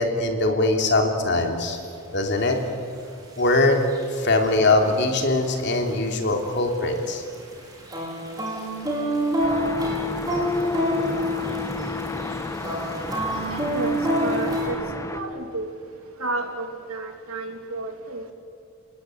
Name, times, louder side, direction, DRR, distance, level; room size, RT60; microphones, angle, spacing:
voice 1, 0.0-1.8 2.1-2.6 3.4-3.8 4.1-7.2, left 2 dB, 50° left, 3 dB, 3.4 m, -21 dB
sound 1, 1.7-1.8 2.5-2.6 3.4-4.6 4.8-5.1 5.4-7.0 7.3-14.7, equal, 15° right, 5.1 m, -27 dB
sound 2, 9.4-15.2, left 1 dB, 15° left, 1.3 m, -33 dB
voice 2, 13.5-15.7 16.2-18.2, right 2 dB, 75° right, 4 dB, 3.2 m, -32 dB
30.0 x 19.5 x 9.3 m, 2.4 s
head